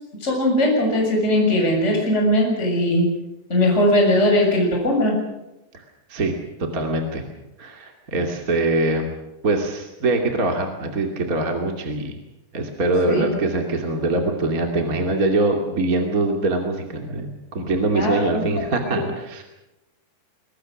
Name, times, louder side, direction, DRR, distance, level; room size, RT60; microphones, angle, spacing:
voice 1, 0.2-3.1 3.5-5.2 13.1-13.3 17.9-18.4 18.9-19.0, left 1 dB, 15° left, 0 dB, 6.7 m, -19 dB
voice 2, 6.7-7.2 7.6-9.1 9.4-12.1 12.5-19.4, right 2 dB, 25° right, 3 dB, 2.2 m, -23 dB
25.5 x 22.5 x 6.4 m, 0.94 s
omnidirectional pair, 5.0 m